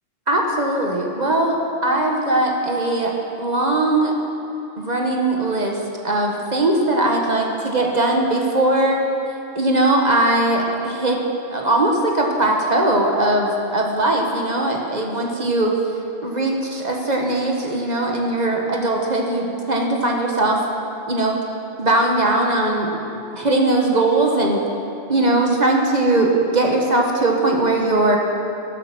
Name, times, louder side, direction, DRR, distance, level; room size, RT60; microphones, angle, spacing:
voice 1, 0.3-4.1 4.8-9.0 9.5-11.2 11.5-15.8 16.2-20.6 21.1-21.4 21.8-22.9 23.3-24.6 25.1-28.2, right 2 dB, 35° right, 0 dB, 1.4 m, -20 dB
13.5 x 12.5 x 6.0 m, 2.8 s
omnidirectional pair, 1.3 m